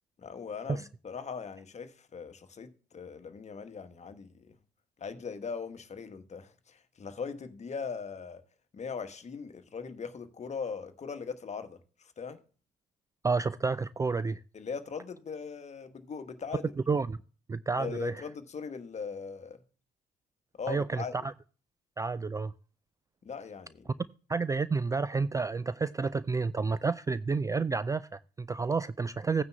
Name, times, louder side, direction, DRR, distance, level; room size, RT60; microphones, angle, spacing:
voice 1, 0.2-4.6 5.0-8.4 8.7-12.4 14.5-16.7 17.8-19.6 20.6-21.1 23.2-24.0, left 5 dB, 35° left, 1.3 m, -40 dB
voice 2, 13.2-14.4 16.9-17.2 17.5-18.2 20.7-21.3 22.0-22.5 24.3-29.4, right 4 dB, 15° right, 0.4 m, -30 dB
16.0 x 9.4 x 2.3 m
figure-of-eight pair, 50°, 20 cm